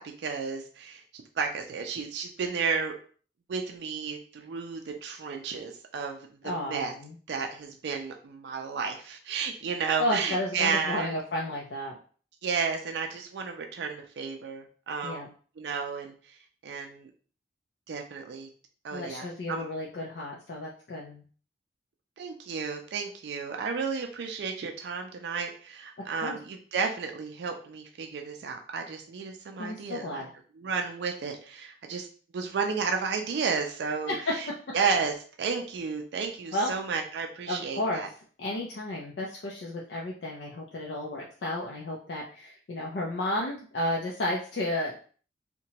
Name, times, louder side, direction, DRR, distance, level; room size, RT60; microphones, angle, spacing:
voice 1, 0.0-2.9 3.5-6.2 6.4-6.9 7.3-11.1 12.4-15.3 15.6-16.1 16.6-17.1 17.9-18.5 18.8-19.6 22.2-30.2 30.6-32.1 32.3-34.5 34.7-38.1, right 5 dB, 70° right, 4 dB, 0.4 m, -32 dB
voice 2, 6.4-7.1 10.0-12.0 15.0-15.3 18.9-21.2 26.2-26.4 29.6-30.3 34.1-34.4 36.5-36.8 37.5-38.0 38.4-44.9, left 1 dB, 70° left, -3 dB, 0.5 m, -32 dB
2.8 x 2.2 x 2.8 m, 0.42 s
head